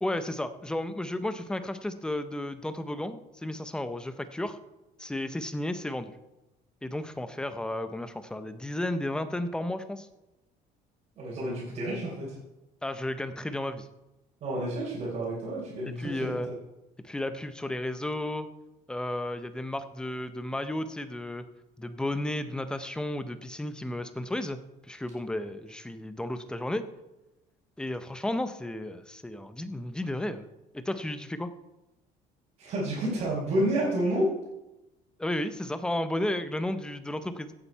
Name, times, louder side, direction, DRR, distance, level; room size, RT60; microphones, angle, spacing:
voice 1, 0.0-4.6 5.0-6.1 6.8-10.1 12.8-13.9 15.9-16.5 17.0-18.5 18.9-21.4 21.8-24.6 24.8-26.9 27.8-30.5 30.7-31.5 35.2-37.5, left 1 dB, 5° left, 10 dB, 0.5 m, -33 dB
voice 2, 11.2-12.3 14.4-16.4 32.6-34.4, right 1 dB, 45° right, -7 dB, 3.6 m, -30 dB
16.0 x 8.4 x 4.5 m, 0.99 s
cardioid pair, 175°, 16 cm